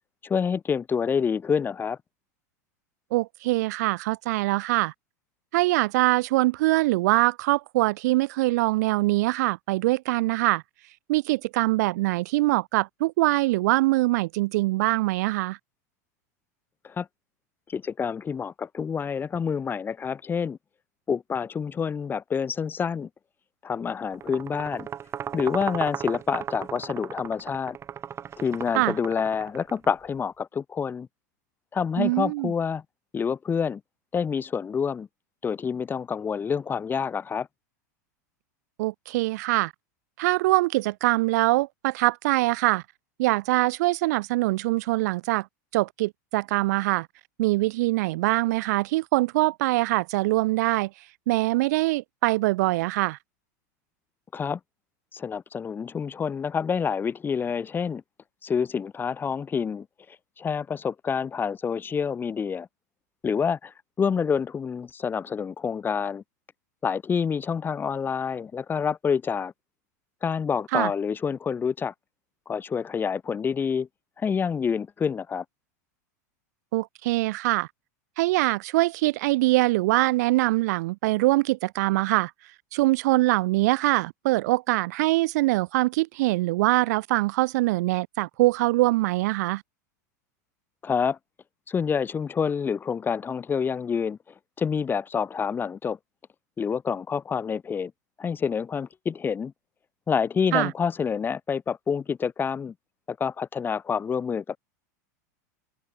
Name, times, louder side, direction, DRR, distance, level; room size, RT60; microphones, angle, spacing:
voice 1, 0.2-2.0 16.8-17.1 17.7-20.6 21.1-23.1 23.6-24.9 25.3-27.8 28.4-31.1 31.7-32.8 33.1-33.8 34.1-35.1 35.4-37.5 54.3-54.6 55.1-58.0 58.4-59.9 60.4-62.7 63.2-66.2 66.8-69.5 70.2-71.9 72.5-73.9 74.2-75.4 90.8-91.2 91.7-94.2 94.6-96.0 96.6-97.9 98.2-99.5 100.1-102.7 103.1-104.6, left 6 dB, 20° left, 1.8 m, -27 dB
voice 2, 3.1-4.9 5.5-10.6 11.1-15.6 28.8-29.0 32.0-32.5 38.8-39.7 40.2-42.8 43.2-45.5 45.7-47.1 47.4-50.9 51.3-53.2 70.7-70.9 76.7-77.7 78.2-82.3 82.7-89.6 100.5-100.7, right 20 dB, 65° right, 1.8 m, -23 dB
sound 1, 24.1-29.9, right 9 dB, 30° right, 1.7 m, -36 dB
open air
hypercardioid pair, 110°, 10 cm